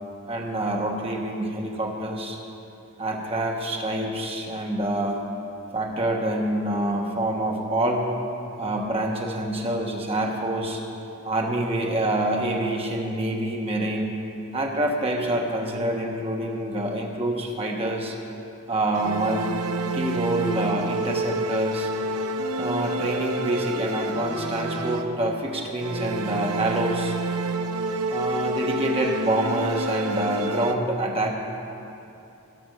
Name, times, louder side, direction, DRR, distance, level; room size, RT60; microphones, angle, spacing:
voice 1, 0.3-2.4 3.0-5.2 5.7-8.1 8.6-10.8 11.2-14.1 14.5-18.2 18.7-19.6 19.9-21.9 22.6-27.1 28.1-31.3, right 1 dB, 25° right, 0 dB, 1.2 m, -26 dB
sound 1, 18.9-25.4 25.8-30.7, right 2 dB, 85° right, 0.6 m, -29 dB
15.5 x 6.2 x 6.5 m, 2.7 s
head